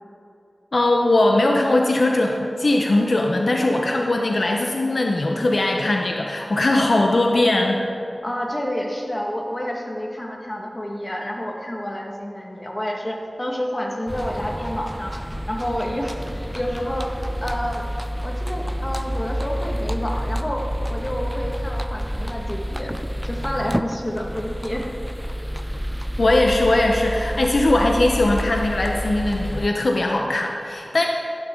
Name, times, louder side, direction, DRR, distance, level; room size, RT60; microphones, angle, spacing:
voice 1, 0.7-7.8 26.2-31.1, left 2 dB, 65° left, 1 dB, 0.9 m, -20 dB
voice 2, 8.2-15.1 15.5-17.8 18.2-22.9 23.2-24.9, equal, 25° left, 0 dB, 1.9 m, -29 dB
sound 1, 14.1-29.7, equal, 5° right, 0.4 m, -29 dB
15.0 x 11.5 x 3.9 m, 2.7 s
wide cardioid pair, 55°, 0 cm